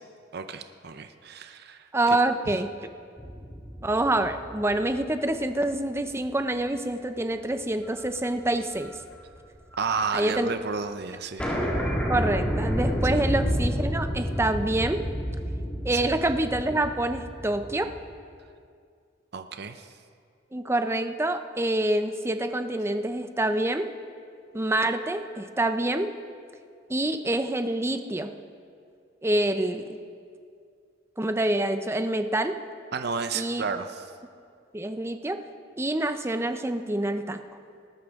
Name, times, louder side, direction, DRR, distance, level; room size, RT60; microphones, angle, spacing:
voice 1, 0.3-2.2 9.8-11.4 13.1-13.2 15.9-16.0 19.3-19.8 32.9-34.0, right 5 dB, 55° right, 8 dB, 0.6 m, -32 dB
voice 2, 1.9-2.7 3.8-8.9 10.1-10.5 11.8-15.0 15.8-17.9 20.5-23.9 24.5-26.1 26.9-28.3 29.2-30.0 31.2-32.6 33.3-33.6 34.7-35.4 35.8-37.4, right 1 dB, 15° right, 8 dB, 0.6 m, -26 dB
sound 1, 3.2-5.8 6.2-6.3 7.8-8.2 8.5-9.9 10.2-10.3 10.5-10.6 10.9-11.0 11.4-18.1, equal, 5° left, 1.8 m, -30 dB
19.5 x 12.5 x 3.6 m, 2.2 s
head